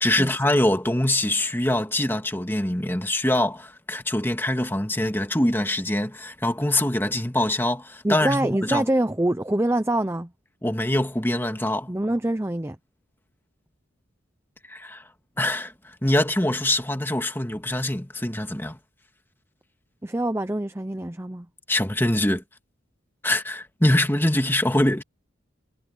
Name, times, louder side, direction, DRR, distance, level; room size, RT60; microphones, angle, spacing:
voice 1, 0.0-8.9 10.6-11.9 14.7-15.0 15.4-15.7 16.0-18.8 21.7-22.4 23.2-25.0, left 1 dB, 10° left, 2.0 m, -24 dB
voice 2, 8.0-10.3 11.9-12.8 20.0-21.5, right 1 dB, 15° right, 0.6 m, -25 dB
head